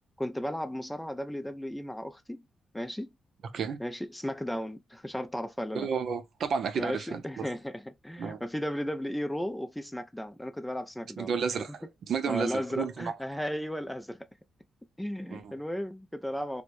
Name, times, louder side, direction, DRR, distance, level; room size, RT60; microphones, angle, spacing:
voice 1, 0.2-2.4 2.7-3.1 3.8-5.9 6.8-11.6 12.3-14.2 15.0-16.6, equal, 5° left, 0.3 m, -35 dB
voice 2, 5.7-7.5 8.2-8.4 11.2-13.1 15.3-15.5, right 6 dB, 60° right, 0.5 m, -32 dB
4.5 x 2.1 x 2.5 m
wide cardioid pair, 155°, 0 cm